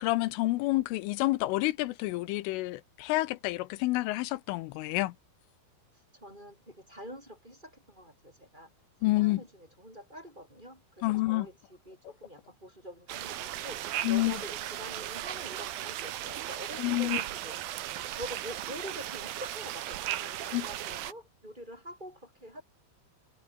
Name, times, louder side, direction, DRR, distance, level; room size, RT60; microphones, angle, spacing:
voice 1, 0.0-5.1 9.0-9.4 11.0-11.5 14.0-14.4 16.8-17.2 20.5-20.7, left 19 dB, 85° left, 3.3 m, -28 dB
voice 2, 6.2-8.7 9.0-17.6 18.1-22.6, equal, 10° right, 6.2 m, -46 dB
sound 1, 13.1-21.1, right 13 dB, 65° right, 2.5 m, -36 dB
omnidirectional pair, 5.6 m